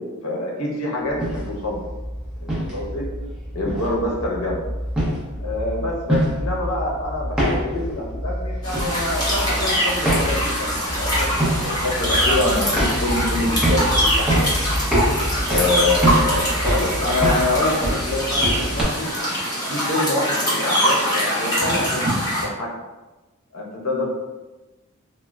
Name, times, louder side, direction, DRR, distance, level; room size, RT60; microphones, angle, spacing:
voice 1, 0.0-1.8 2.4-3.0 3.5-4.6 5.4-11.3 11.6-14.4 15.5-19.0 19.7-22.1 22.4-22.7 23.5-24.1, left 2 dB, 70° left, -2 dB, 0.7 m, -26 dB
sound 1, 1.1-18.8, equal, 5° right, 0.6 m, -25 dB
sound 2, 8.6-22.4, equal, 20° left, 0.9 m, -23 dB
3.6 x 2.1 x 2.2 m, 1.1 s
head